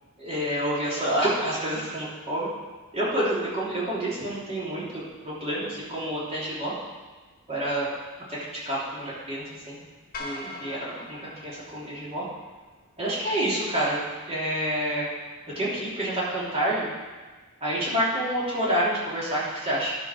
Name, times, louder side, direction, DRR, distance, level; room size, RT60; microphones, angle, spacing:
voice 1, 0.2-2.5 2.9-6.7 7.5-7.9 8.3-8.4 8.6-9.8 10.2-12.2 13.0-14.0 14.3-15.0 15.5-16.9 17.6-19.9, right 1 dB, 30° right, -8 dB, 3.3 m, -28 dB
sound 1, 10.1-12.5, left 2 dB, 40° left, 1.6 m, -41 dB
12.0 x 5.1 x 6.2 m, 1.4 s
head